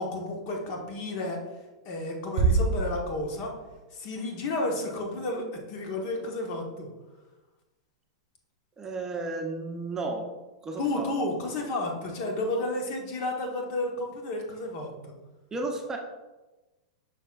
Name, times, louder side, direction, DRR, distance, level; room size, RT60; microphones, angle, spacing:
voice 1, 0.0-1.4 1.8-3.5 3.9-6.9 10.8-15.1, left 2 dB, 50° left, 1 dB, 1.5 m, -32 dB
Bass drum, 2.4-3.8, right 4 dB, 55° right, 0.6 m, -26 dB
voice 2, 8.8-10.3 10.6-11.1 15.5-16.0, right 3 dB, 20° right, 2 dB, 0.8 m, -33 dB
6.7 x 5.6 x 2.5 m, 1.1 s
hypercardioid pair, 115°, 3 cm